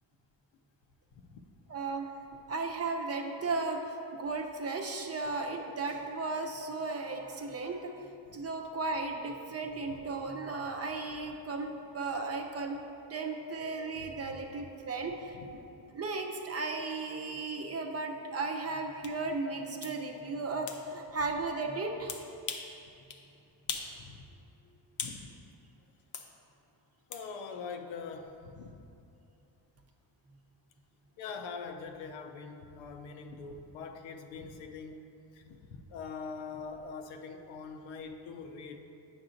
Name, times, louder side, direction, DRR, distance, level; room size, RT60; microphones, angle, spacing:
voice 1, 1.7-2.1 2.5-7.9 8.3-12.8 13.1-15.6 15.9-22.2, right 3 dB, 35° right, 2 dB, 0.7 m, -35 dB
sound 1, 19.0-19.2 19.8-20.0 20.7-20.8 22.1-22.7 23.1-23.2 23.7-24.0 24.3-25.2 26.1-26.3 27.1-27.3, left 5 dB, 40° left, 0.7 m, -39 dB
voice 2, 27.1-28.8 31.2-35.1 35.3-38.8, left 5 dB, 85° left, 5 dB, 0.6 m, -43 dB
8.6 x 6.0 x 2.5 m, 2.7 s
cardioid pair, 85°, 45 cm